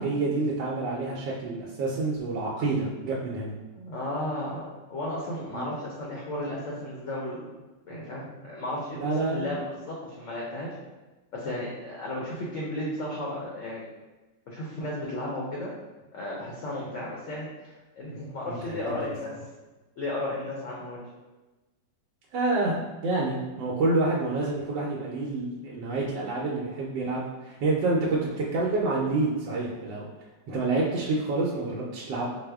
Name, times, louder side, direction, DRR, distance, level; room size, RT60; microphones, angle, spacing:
voice 1, 0.0-3.5 5.5-5.6 9.0-9.6 18.0-19.1 22.3-30.1 30.5-32.3, right 3 dB, 85° right, -4 dB, 1.3 m, -28 dB
voice 2, 3.7-10.7 11.3-13.9 14.5-15.7 16.1-19.3 20.0-21.0, left 1 dB, 60° left, -4 dB, 0.8 m, -34 dB
5.0 x 2.1 x 3.4 m, 1.1 s
omnidirectional pair, 2.0 m